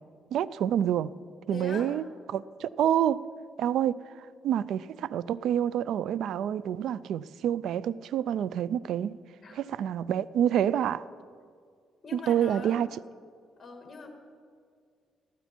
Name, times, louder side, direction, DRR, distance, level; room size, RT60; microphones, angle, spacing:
voice 1, 0.3-1.1 1.5-2.0 2.3-3.2 3.6-9.2 9.5-11.1 12.1-12.9, right 10 dB, 75° right, 0.3 m, -28 dB
voice 2, 1.5-1.9 9.4-9.6 12.0-12.8 13.6-14.1, left 3 dB, 35° left, 2.0 m, -42 dB
15.0 x 12.5 x 4.4 m
cardioid pair, 90°, 0 cm